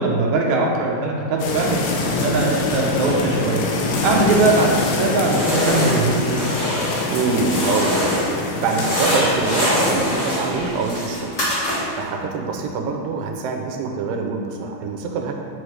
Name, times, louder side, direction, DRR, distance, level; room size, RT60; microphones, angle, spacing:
voice 1, 0.0-3.6 4.0-6.4, right 2 dB, 70° right, -1 dB, 2.0 m, -21 dB
sound 1, 1.4-10.2, left 3 dB, 80° left, 2.5 m, -25 dB
sound 2, 4.0-4.9 5.2-8.4 8.6-12.0, equal, 30° left, 1.5 m, -24 dB
voice 2, 7.1-11.4 12.0-15.3, right 4 dB, 85° right, 2 dB, 2.4 m, -25 dB
8.0 x 6.4 x 3.2 m, 2.1 s
omnidirectional pair, 4.0 m